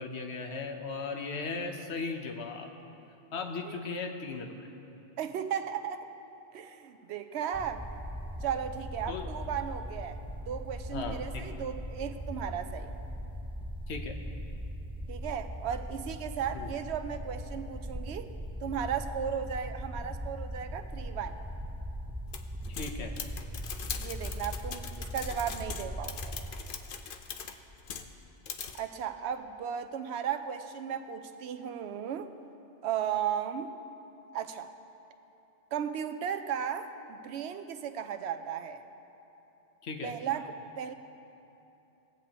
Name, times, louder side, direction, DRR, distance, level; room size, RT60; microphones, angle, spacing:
voice 1, 0.0-2.7 3.3-4.7 9.1-9.3 10.9-11.4 13.9-14.1 16.5-16.7 22.7-23.1 39.8-40.1, left 4 dB, 75° left, 4 dB, 1.1 m, -37 dB
voice 2, 5.2-6.1 6.5-7.8 8.4-10.2 10.5-12.9 15.1-18.3 18.6-21.4 24.0-26.3 28.7-32.3 32.8-33.7 34.3-34.7 35.7-38.8 40.0-40.9, right 8 dB, 80° right, 9 dB, 0.9 m, -35 dB
sound 1, 7.5-26.5, equal, 10° right, 0.4 m, -40 dB
sound 2, 22.3-28.1 28.4-28.8, left 7 dB, 60° left, 0.7 m, -41 dB
19.5 x 8.2 x 2.9 m, 3.0 s
omnidirectional pair, 1.1 m